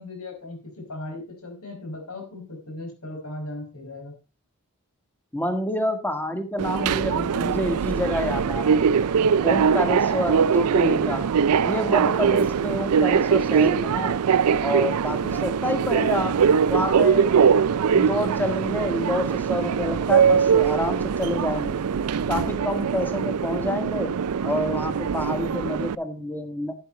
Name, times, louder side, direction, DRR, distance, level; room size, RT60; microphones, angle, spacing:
voice 1, 0.0-4.1, left 2 dB, 80° left, 3 dB, 5.3 m, -37 dB
voice 2, 5.3-8.8 9.4-11.3 11.6-14.2 14.6-16.4 16.7-17.5 17.9-21.8 22.3-24.2 24.4-26.7, left 1 dB, 10° left, 8 dB, 1.5 m, -28 dB
Subway metro underground, 6.6-26.0, right 7 dB, 85° right, 0.4 m, -22 dB
11.5 x 8.9 x 4.3 m, 0.33 s
head